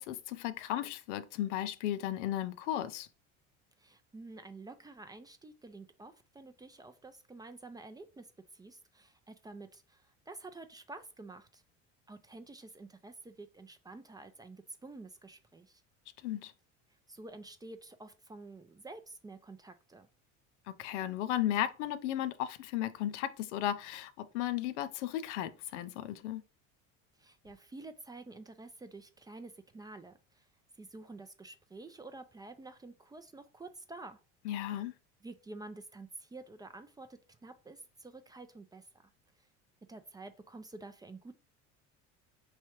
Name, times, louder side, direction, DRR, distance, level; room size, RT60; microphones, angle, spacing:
voice 1, 0.0-3.1 16.2-16.5 20.7-26.4 34.4-34.9, left 12 dB, 90° left, 0.5 m, -35 dB
voice 2, 3.8-8.3 8.5-11.6 12.1-15.8 17.1-20.1 27.2-30.5 30.7-34.2 34.7-34.8 35.2-39.1 39.4-39.5 39.9-41.3, right 2 dB, 10° right, 0.3 m, -49 dB
4.6 x 3.2 x 2.9 m
supercardioid pair, 95°, 34 cm